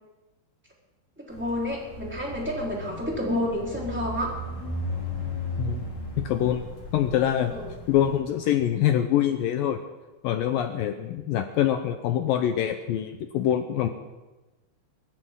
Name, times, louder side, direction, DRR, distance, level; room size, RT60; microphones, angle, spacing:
voice 1, 1.2-4.4 7.5-7.7, left 1 dB, 5° right, -4 dB, 3.4 m, -30 dB
sound 1, 1.3-8.2, left 1 dB, 45° left, 4.7 m, -36 dB
voice 2, 5.6-5.9 6.2-6.7 6.9-7.5 7.9-9.8 10.2-13.9, left 11 dB, 80° left, 7 dB, 2.1 m, -25 dB
24.0 x 13.5 x 3.8 m, 1.1 s
omnidirectional pair, 4.8 m